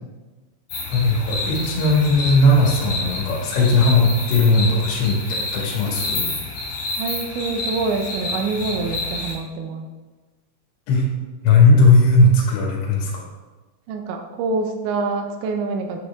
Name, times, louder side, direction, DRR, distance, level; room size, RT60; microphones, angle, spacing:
sound 1, 0.7-9.3, left 2 dB, 55° left, 4.5 m, -29 dB
voice 1, 0.9-6.3 10.9-11.0 11.4-13.1, left 2 dB, 75° left, -3 dB, 4.1 m, -17 dB
voice 2, 7.0-9.9 13.9-16.0, right 3 dB, 75° right, 4 dB, 2.9 m, -26 dB
9.8 x 6.2 x 3.6 m, 1.2 s
omnidirectional pair, 5.6 m